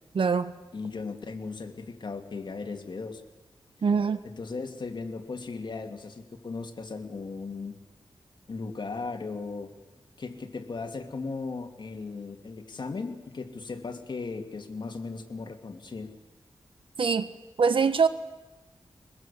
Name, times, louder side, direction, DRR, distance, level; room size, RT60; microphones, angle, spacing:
voice 1, 0.1-0.5 3.8-4.2 17.0-17.3 17.6-18.1, right 5 dB, 70° right, 12 dB, 1.4 m, -23 dB
voice 2, 0.7-3.2 4.2-7.7 8.5-9.7 10.2-16.1, left 4 dB, 55° left, 5 dB, 2.6 m, -37 dB
23.0 x 21.0 x 8.5 m, 1.1 s
wide cardioid pair, 80°, 9 cm